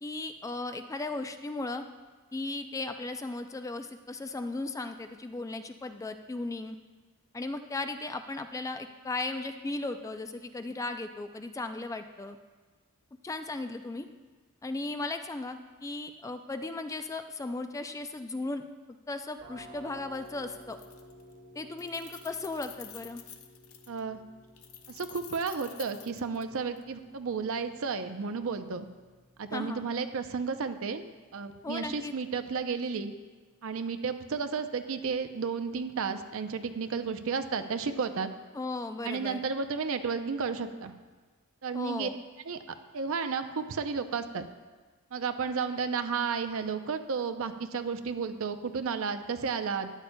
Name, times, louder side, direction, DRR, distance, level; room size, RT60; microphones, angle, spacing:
voice 1, 0.0-1.9 2.3-6.8 7.3-12.4 13.2-14.1 14.6-18.6 19.1-20.8 21.5-23.2 29.5-29.9 31.6-32.1 38.5-39.5 41.7-42.2, left 2 dB, 15° left, 8 dB, 0.3 m, -36 dB
sound 1, 19.4-30.9, right 1 dB, 85° right, 2.0 m, -55 dB
Keys jangling, 20.1-20.3 20.6-21.3 21.6-24.0 24.6-26.8, left 10 dB, 75° left, 0.7 m, -49 dB
voice 2, 23.9-24.2 24.9-28.9 29.4-31.0 31.3-33.1 33.6-38.3 39.0-40.9 41.6-42.1 42.5-44.4 45.1-49.9, right 5 dB, 65° right, 8 dB, 0.6 m, -32 dB
13.0 x 9.9 x 2.2 m, 1.4 s
head